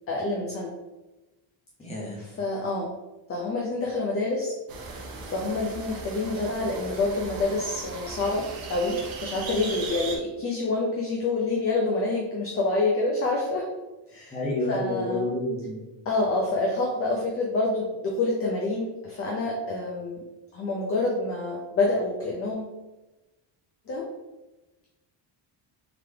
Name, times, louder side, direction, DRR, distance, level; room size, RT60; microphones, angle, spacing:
voice 1, 0.1-0.7 2.2-2.9 3.3-4.5 5.3-13.7 14.1-14.4 14.7-15.3 16.1-20.2 20.5-22.7 23.9-24.1, left 2 dB, 30° left, -2 dB, 0.5 m, -27 dB
voice 2, 1.8-2.2 14.3-15.8, left 1 dB, 15° left, -4 dB, 0.9 m, -29 dB
sound 1, 4.7-10.2, right 3 dB, 50° right, 0.8 m, -38 dB
3.8 x 3.3 x 3.3 m, 1.1 s
cardioid pair, 175°, 47 cm